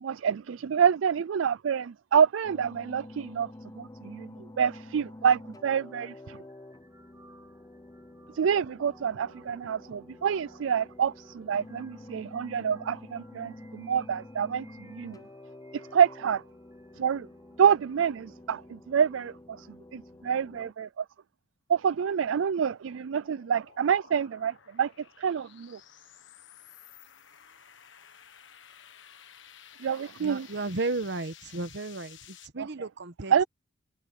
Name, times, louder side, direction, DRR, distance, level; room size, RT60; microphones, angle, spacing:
voice 1, 0.0-3.5 3.8-4.3 4.6-6.4 8.3-15.2 15.9-16.4 17.0-17.3 17.6-19.7 19.9-21.0 21.7-24.9 25.2-25.8 29.8-30.5 32.6-32.7 33.3-33.4, right 7 dB, 75° right, 0.4 m, -27 dB
sound 1, 2.4-20.7, left 1 dB, 20° left, 0.7 m, -49 dB
sound 2, 5.6-18.0, right 3 dB, 20° right, 4.3 m, -62 dB
sound 3, 21.9-32.5, left 9 dB, 70° left, 1.5 m, -54 dB
voice 2, 30.2-33.3, right 3 dB, 60° right, 1.2 m, -34 dB
head